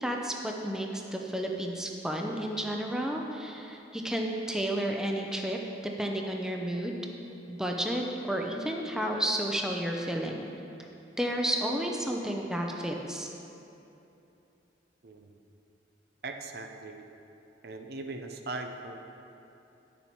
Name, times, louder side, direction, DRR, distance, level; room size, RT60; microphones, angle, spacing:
voice 1, 0.0-5.6 6.0-7.0 7.5-10.5 11.2-13.3, right 1 dB, 5° right, 1 dB, 0.6 m, -31 dB
voice 2, 16.2-17.1 17.6-19.0, right 2 dB, 60° right, 5 dB, 0.6 m, -39 dB
10.0 x 7.0 x 4.4 m, 2.9 s
head